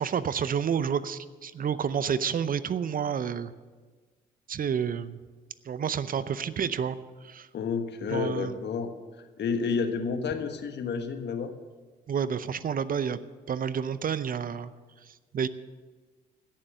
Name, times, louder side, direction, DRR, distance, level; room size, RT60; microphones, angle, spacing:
voice 1, 0.0-3.5 4.5-5.2 5.6-7.5 8.1-8.6 12.1-13.2 13.5-14.7 15.1-15.5, right 7 dB, 45° right, 15 dB, 0.7 m, -29 dB
voice 2, 7.5-8.9 9.4-11.5, left 5 dB, 60° left, 7 dB, 1.4 m, -30 dB
16.5 x 7.5 x 6.7 m, 1.4 s
hypercardioid pair, 55°, 20 cm